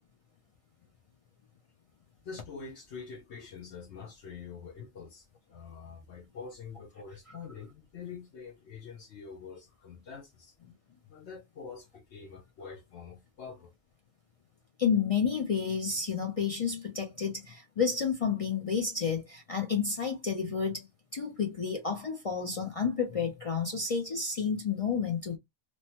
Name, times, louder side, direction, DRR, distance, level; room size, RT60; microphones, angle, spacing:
voice 1, 2.2-10.6 11.1-13.7, left 5 dB, 70° left, 0.9 m, -45 dB
voice 2, 14.8-25.4, left 6 dB, 50° left, 0.4 m, -30 dB
3.0 x 2.1 x 2.8 m
omnidirectional pair, 1.2 m